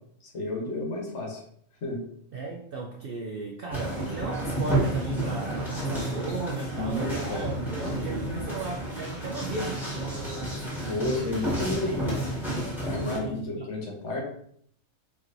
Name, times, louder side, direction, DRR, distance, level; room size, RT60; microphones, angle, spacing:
voice 1, 0.3-1.4 1.8-2.0 6.7-7.4 10.8-12.0 12.8-14.2, left 2 dB, 60° left, -1 dB, 1.2 m, -31 dB
voice 2, 2.3-9.9 12.6-12.7 13.0-13.7, right 3 dB, 65° right, -1 dB, 0.5 m, -35 dB
sound 1, 3.7-13.2, right 1 dB, ahead, 1.4 m, -31 dB
4.5 x 3.0 x 2.5 m, 0.66 s
omnidirectional pair, 1.5 m